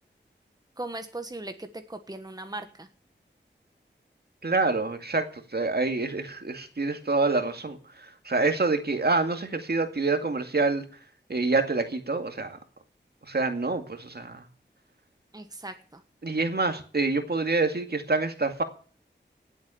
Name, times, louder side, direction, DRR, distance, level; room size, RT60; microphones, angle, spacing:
voice 1, 0.8-2.9 15.3-16.0, right 2 dB, 20° right, 7 dB, 1.4 m, -38 dB
voice 2, 4.4-10.8 11.3-12.6 13.3-14.5 16.2-18.6, right 3 dB, 55° right, 6 dB, 2.2 m, -27 dB
18.0 x 8.3 x 7.0 m, 0.41 s
wide cardioid pair, 70°, 19 cm